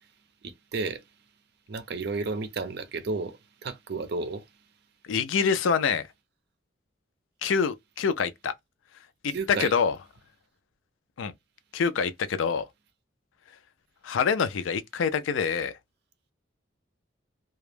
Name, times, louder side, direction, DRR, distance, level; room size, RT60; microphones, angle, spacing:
voice 1, 0.4-1.0 1.7-4.4 9.3-9.7, right 3 dB, 60° right, 0.5 m, -32 dB
voice 2, 5.0-6.1 7.4-8.5 9.2-10.0 11.2-11.3 11.7-12.7 14.0-15.7, left 6 dB, 90° left, 0.4 m, -26 dB
2.2 x 2.0 x 3.1 m
head